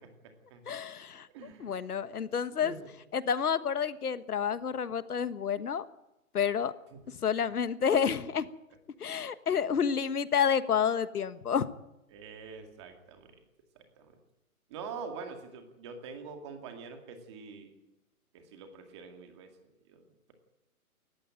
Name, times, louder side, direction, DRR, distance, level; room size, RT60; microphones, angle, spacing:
voice 1, 0.7-1.3 1.6-2.7 3.1-5.8 6.3-6.7 7.1-8.5 9.0-11.7, left 7 dB, 85° left, 14 dB, 1.5 m, -29 dB
voice 2, 1.3-1.7 2.6-2.8 6.9-7.0 12.1-13.3 14.0-14.1 14.7-17.8 18.3-19.5 19.9-20.3, right 5 dB, 20° right, 5 dB, 2.1 m, -45 dB
19.0 x 14.5 x 10.0 m, 0.92 s
hypercardioid pair, 175°, 44 cm